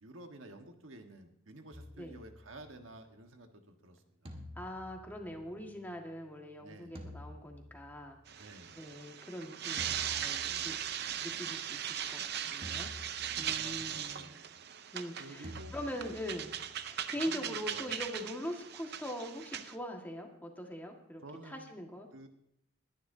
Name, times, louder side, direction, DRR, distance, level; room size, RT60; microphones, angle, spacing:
voice 1, 0.0-4.3 6.6-7.0 8.4-8.8 13.3-14.4 15.2-16.2 17.1-17.9 21.2-21.7 22.1-22.3, right 2 dB, 80° right, 5 dB, 1.4 m, -52 dB
sound 1, 1.7-3.0 4.2-5.9 6.9-8.3 9.8-11.1 12.6-13.8 15.4-16.9, left 1 dB, 30° right, 1.6 m, -50 dB
voice 2, 4.6-8.5 8.8-10.8 11.2-12.9 13.4-14.3 14.9-16.5 16.8-22.1, equal, 10° left, 1 dB, 1.7 m, -42 dB
sound 2, 8.3-19.7, right 9 dB, 55° right, 0.6 m, -39 dB
21.5 x 10.5 x 2.7 m, 0.76 s
head